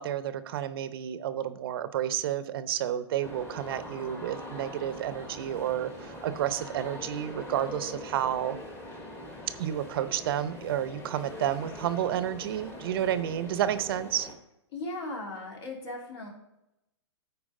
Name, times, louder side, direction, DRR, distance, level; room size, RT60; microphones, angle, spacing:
voice 1, 0.0-8.6 9.6-14.3, right 11 dB, 50° right, 12 dB, 0.6 m, -31 dB
sound 1, 3.2-14.3, left 1 dB, 15° left, 1.3 m, -43 dB
voice 2, 14.7-16.3, left 2 dB, 60° left, -1 dB, 3.3 m, -37 dB
13.5 x 4.6 x 3.7 m, 0.87 s
hypercardioid pair, 125°, 15 cm